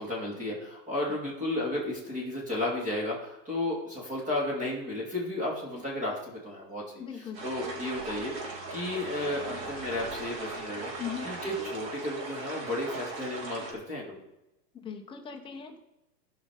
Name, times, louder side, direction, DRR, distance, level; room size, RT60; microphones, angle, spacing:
voice 1, 0.0-10.9 11.2-14.2, left 1 dB, 15° right, -3 dB, 2.5 m, -33 dB
voice 2, 7.0-7.4 11.0-11.3 14.8-15.8, left 8 dB, 10° left, 2 dB, 0.8 m, -39 dB
sound 1, 7.3-13.7, right 2 dB, 70° right, 3.6 m, -39 dB
15.0 x 5.7 x 4.9 m, 0.94 s
supercardioid pair, 150°, 50 cm